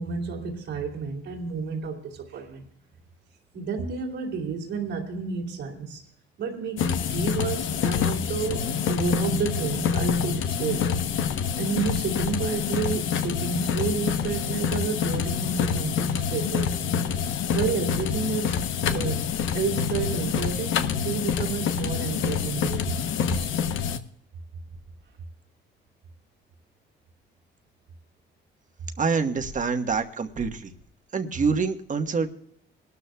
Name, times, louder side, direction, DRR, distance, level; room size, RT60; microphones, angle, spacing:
voice 1, 0.0-2.6 3.5-6.0 6.4-16.7 17.3-19.3 19.5-23.5, right 5 dB, 75° right, -3 dB, 2.7 m, -31 dB
sound 1, 6.8-24.0, left 7 dB, 80° left, 0.9 m, -27 dB
voice 2, 29.0-30.7 31.1-32.3, right 5 dB, 40° right, 6 dB, 1.4 m, -26 dB
25.0 x 12.5 x 2.3 m, 0.70 s
cardioid pair, 90°, 20 cm